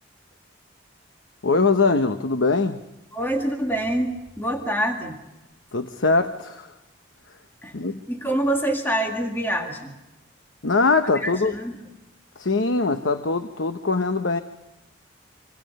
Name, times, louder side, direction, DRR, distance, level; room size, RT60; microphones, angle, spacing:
voice 1, 1.4-2.8 5.7-6.7 7.7-8.0 10.6-11.6 12.4-14.4, left 3 dB, 70° left, 9 dB, 0.9 m, -22 dB
voice 2, 3.1-5.2 7.6-7.8 8.1-9.9 11.1-11.8, right 1 dB, 10° left, 2 dB, 2.0 m, -26 dB
26.0 x 25.5 x 5.4 m, 0.98 s
head